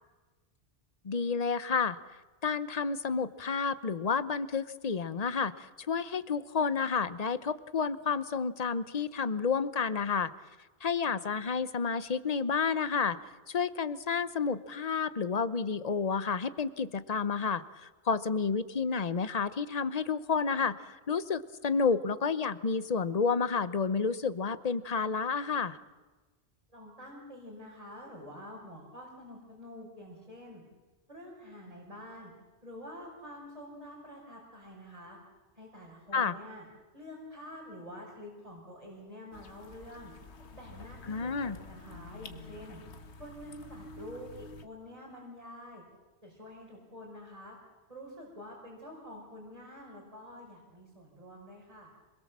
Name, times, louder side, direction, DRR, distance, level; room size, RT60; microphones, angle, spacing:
voice 1, 1.0-2.0 2.4-10.3 10.8-13.2 13.5-25.8 36.1-36.3 41.1-41.5, left 5 dB, 40° left, 14 dB, 0.8 m, -30 dB
voice 2, 26.7-30.6 31.1-32.3 32.6-35.2 35.5-36.7 36.9-40.1 40.5-42.8 43.2-45.8 46.2-47.6 47.9-51.9, equal, 30° right, -5 dB, 5.6 m, -47 dB
sound 1, 39.3-44.7, left 3 dB, 70° left, 1.6 m, -49 dB
27.0 x 21.0 x 7.4 m, 1.3 s
omnidirectional pair, 1.2 m